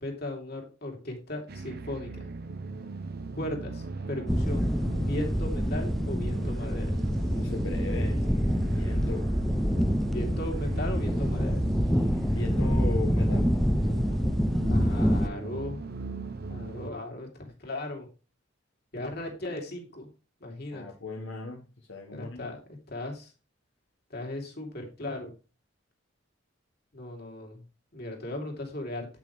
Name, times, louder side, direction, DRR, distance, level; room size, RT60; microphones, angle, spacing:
voice 1, 0.0-2.3 3.3-6.9 10.1-11.6 14.7-15.8 16.5-18.1 18.9-20.1 20.4-20.9 22.1-23.3 24.1-25.3 26.9-27.6 27.9-29.1, left 1 dB, 55° left, 2 dB, 2.9 m, -37 dB
sound 1, 1.5-16.9, right 3 dB, 50° right, 0.8 m, -38 dB
sound 2, 4.3-15.3, equal, ahead, 0.5 m, -26 dB
voice 2, 7.1-8.2 8.7-9.3 12.3-13.5 20.7-22.5, left 3 dB, 75° left, 1 dB, 1.3 m, -38 dB
8.8 x 8.3 x 3.2 m, 0.33 s
head